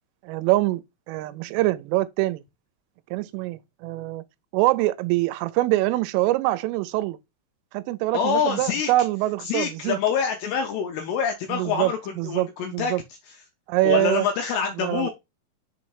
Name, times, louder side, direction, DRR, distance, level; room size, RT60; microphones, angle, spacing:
voice 1, 0.2-2.4 3.1-4.2 4.5-7.2 7.7-10.0 11.5-11.9 12.2-13.0 13.7-14.3 14.8-15.1, right 17 dB, 85° right, 3.1 m, -24 dB
voice 2, 8.1-8.9 9.4-13.4 13.8-15.1, left 7 dB, 80° left, 2.4 m, -26 dB
7.1 x 3.1 x 4.7 m
omnidirectional pair, 5.7 m